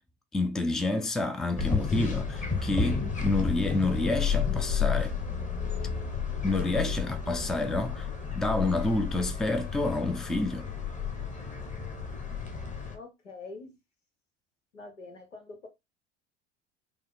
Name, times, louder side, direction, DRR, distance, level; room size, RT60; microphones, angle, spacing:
voice 1, 0.3-5.1 6.4-8.1 8.3-10.7, left 2 dB, ahead, 0.4 m, -29 dB
sound 1, 1.6-12.9, left 6 dB, 20° left, 1.1 m, -31 dB
voice 2, 12.9-13.8 14.7-15.7, left 3 dB, 85° left, 1.1 m, -45 dB
5.0 x 2.1 x 3.6 m
figure-of-eight pair, 75°, 36 cm